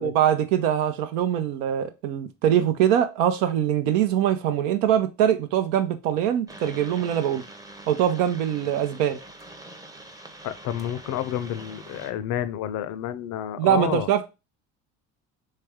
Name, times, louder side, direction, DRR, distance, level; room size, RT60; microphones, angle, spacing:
voice 1, 0.0-7.4 7.9-9.2 13.6-14.3, right 10 dB, 80° right, 0.7 m, -23 dB
sound 1, 6.5-12.1, right 2 dB, 10° right, 0.6 m, -44 dB
voice 2, 10.4-14.1, left 11 dB, 50° left, 0.5 m, -30 dB
3.3 x 3.2 x 3.5 m
supercardioid pair, 85°, 37 cm